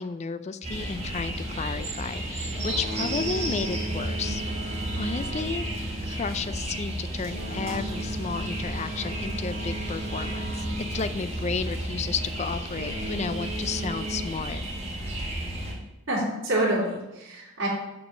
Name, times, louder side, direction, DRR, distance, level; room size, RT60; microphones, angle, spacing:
voice 1, 0.0-4.4 5.0-5.7 6.0-14.6, left 5 dB, 30° left, 13 dB, 0.3 m, -33 dB
sound 1, 0.6-15.7, right 1 dB, 30° right, 1.7 m, -33 dB
Boat Water vehicle, 2.4-11.8 12.6-14.2, right 1 dB, 45° left, 3.1 m, -37 dB
voice 2, 16.1-17.7, right 1 dB, 65° right, -8 dB, 2.6 m, -27 dB
7.0 x 5.0 x 6.1 m, 1.0 s
head